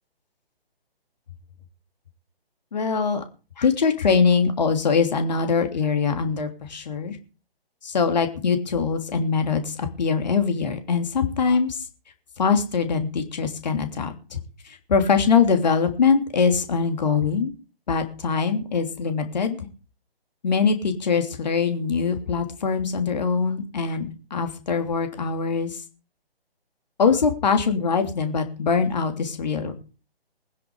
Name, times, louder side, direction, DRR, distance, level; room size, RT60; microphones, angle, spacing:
voice 1, 2.7-3.2 3.6-7.2 7.8-11.8 12.4-14.4 14.6-17.5 17.9-19.7 20.4-25.8 27.0-29.7, left 5 dB, 45° left, 6 dB, 3.1 m, -23 dB
21.0 x 10.5 x 5.1 m, 0.35 s
figure-of-eight pair, 140°, 31 cm